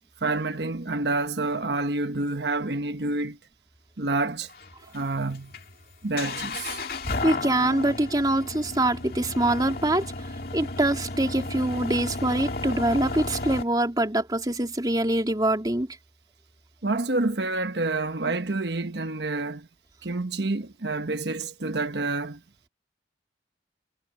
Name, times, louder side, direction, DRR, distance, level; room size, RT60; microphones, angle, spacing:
voice 1, 0.2-3.4 4.0-4.5 4.9-5.5 6.0-6.8 16.8-19.7 20.0-22.4, right 2 dB, 70° right, 1.2 m, -28 dB
sound 1, 4.5-13.6, left 2 dB, 55° left, 2.5 m, -33 dB
voice 2, 7.2-10.1 10.5-15.9, right 1 dB, 20° right, 3.5 m, -24 dB
head